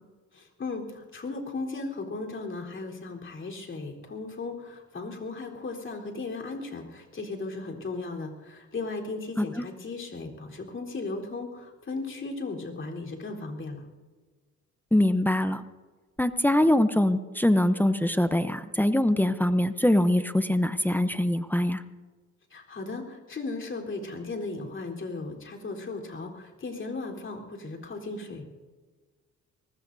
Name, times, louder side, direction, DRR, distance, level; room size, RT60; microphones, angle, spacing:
voice 1, 0.3-13.8 22.5-28.4, left 3 dB, 40° left, 1 dB, 3.8 m, -36 dB
voice 2, 14.9-15.6 16.2-21.8, left 1 dB, 5° left, 11 dB, 0.7 m, -23 dB
24.0 x 20.0 x 2.7 m, 1.4 s
cardioid pair, 90°, 30 cm